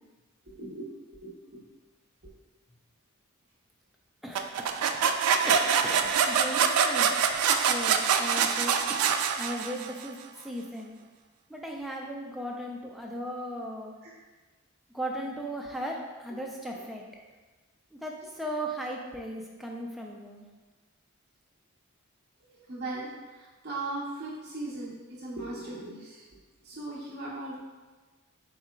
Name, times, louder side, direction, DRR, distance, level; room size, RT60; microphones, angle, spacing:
voice 1, 0.5-0.9 1.2-1.6 14.0-14.1 22.5-26.2 26.6-27.6, right 2 dB, 45° right, -8 dB, 0.8 m, -38 dB
voice 2, 4.2-7.1 7.7-10.2 10.4-10.9 11.5-13.9 14.9-17.0 17.9-20.5, equal, ahead, -1 dB, 0.3 m, -37 dB
sound 1, 4.3-10.0, right 7 dB, 85° right, 0.3 m, -25 dB
4.3 x 3.7 x 2.2 m, 1.3 s
head